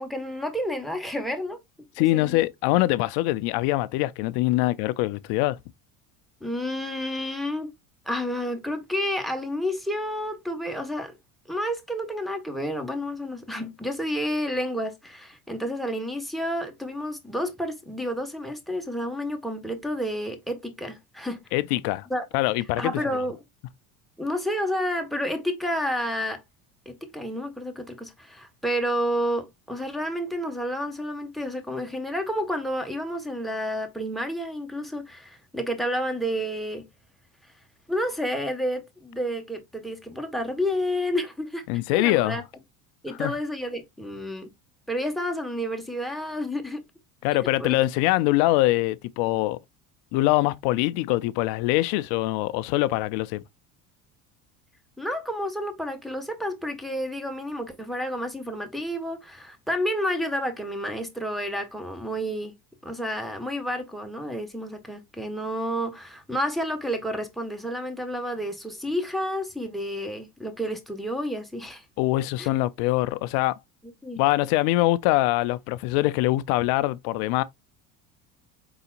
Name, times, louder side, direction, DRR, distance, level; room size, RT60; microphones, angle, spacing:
voice 1, 0.0-1.6 2.0-2.4 6.4-7.7 8.0-11.1 11.5-21.4 22.1-22.2 22.8-23.4 24.2-26.4 26.8-36.9 37.9-41.6 41.9-42.4 43.0-44.5 44.9-46.8 47.6-47.8 55.0-62.6 62.8-71.8 72.4-72.5 74.0-74.2, equal, ahead, 1.4 m, -30 dB
voice 2, 2.0-5.6 21.5-22.1 22.3-23.0 41.7-42.4 43.2-43.4 47.2-49.6 50.1-53.4 72.0-73.6 74.2-77.4, left 17 dB, 65° left, 0.6 m, -23 dB
4.9 x 3.9 x 2.4 m
hypercardioid pair, 85°, 41 cm